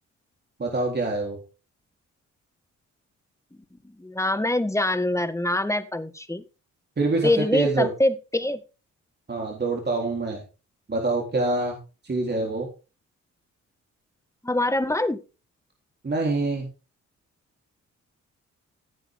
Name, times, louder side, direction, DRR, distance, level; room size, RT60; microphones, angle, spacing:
voice 1, 0.6-1.4 7.0-7.9 9.3-10.4 10.9-11.8 12.0-12.7 16.0-16.7, right 3 dB, 35° right, 0 dB, 3.6 m, -25 dB
voice 2, 3.8-6.4 7.2-8.6 14.4-15.2, left 1 dB, 10° left, 10 dB, 1.7 m, -24 dB
16.0 x 8.1 x 3.7 m, 0.33 s
cardioid pair, 70°, 30 cm